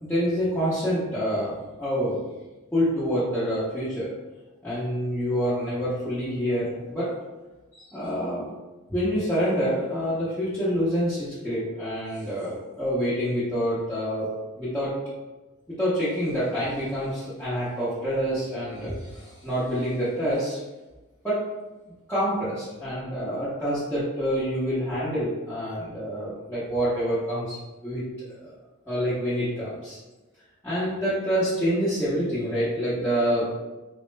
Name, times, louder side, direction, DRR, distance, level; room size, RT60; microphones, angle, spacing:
voice 1, 0.0-2.2 2.7-4.1 4.6-7.1 7.7-8.5 8.9-14.3 14.6-14.9 15.7-20.6 21.2-21.4 22.1-28.5 28.9-30.0 30.6-33.5, equal, 5° left, -13 dB, 0.8 m, -27 dB
4.2 x 2.1 x 3.2 m, 1.1 s
head